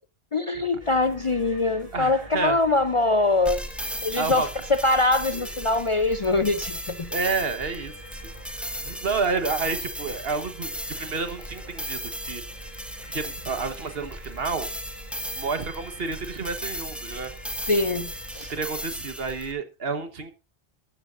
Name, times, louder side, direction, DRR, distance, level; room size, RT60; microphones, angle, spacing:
voice 1, 0.3-3.6 4.0-7.1 17.7-18.5, left 2 dB, 40° left, 0.5 m, -23 dB
sound 1, 0.8-18.6, right 1 dB, 35° right, 5.5 m, -45 dB
voice 2, 1.9-2.6 4.1-4.5 5.3-5.5 7.1-7.9 8.2-8.3 8.6-12.4 13.1-14.7 15.3-17.3 18.5-20.3, right 4 dB, 60° right, 1.5 m, -30 dB
sound 2, 3.5-19.5, equal, ahead, 1.2 m, -36 dB
14.0 x 13.0 x 2.5 m
omnidirectional pair, 1.1 m